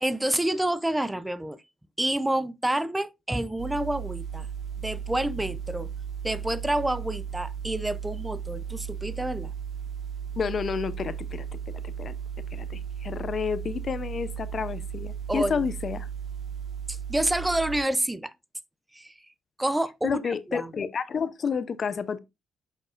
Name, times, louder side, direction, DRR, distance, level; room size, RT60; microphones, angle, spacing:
voice 1, 0.0-1.6 2.0-4.5 4.8-5.9 6.2-9.5 15.3-15.7 16.9-18.3 18.9-19.1 19.6-20.7, right 1 dB, 10° right, 0.5 m, -28 dB
sound 1, 3.6-17.8, right 8 dB, 50° right, 2.5 m, -35 dB
voice 2, 10.4-11.5 11.8-12.1 12.5-16.1 20.0-22.2, left 6 dB, 50° left, 0.6 m, -30 dB
6.4 x 6.3 x 2.5 m
cardioid pair, 90°, 0 cm